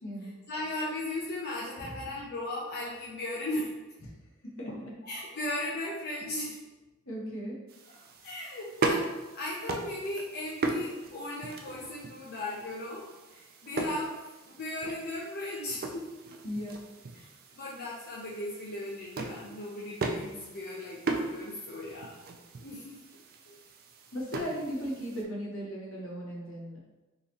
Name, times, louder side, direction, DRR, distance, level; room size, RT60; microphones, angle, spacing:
voice 1, 0.2-3.7 4.7-6.6 7.9-8.0 8.2-13.1 13.3-16.1 17.1-22.2 22.6-23.0 23.5-23.6, left 1 dB, 50° left, -5 dB, 0.5 m, -37 dB
voice 2, 4.4-4.9 7.1-7.6 16.4-16.8 24.1-26.8, equal, 70° left, -3 dB, 1.0 m, -37 dB
sound 1, 7.7-25.3, right 3 dB, 45° right, 0.4 m, -38 dB
3.8 x 2.9 x 2.8 m, 1.1 s
head